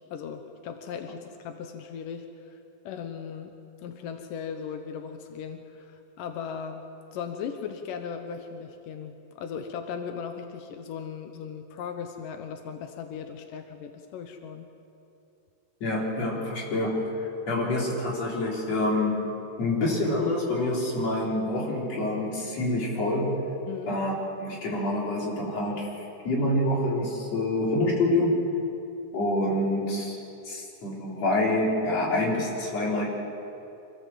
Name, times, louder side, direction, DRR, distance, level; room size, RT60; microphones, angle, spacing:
voice 1, 0.0-2.6 2.9-3.5 3.8-6.8 7.1-14.7 23.7-24.0, left 7 dB, 90° left, 6 dB, 2.7 m, -37 dB
voice 2, 15.8-19.3 19.6-23.4 23.9-24.1 24.4-25.9 26.2-28.4 29.1-30.2 30.4-33.1, left 1 dB, 50° left, -3 dB, 5.0 m, -27 dB
25.5 x 17.0 x 7.6 m, 2.8 s
omnidirectional pair, 3.7 m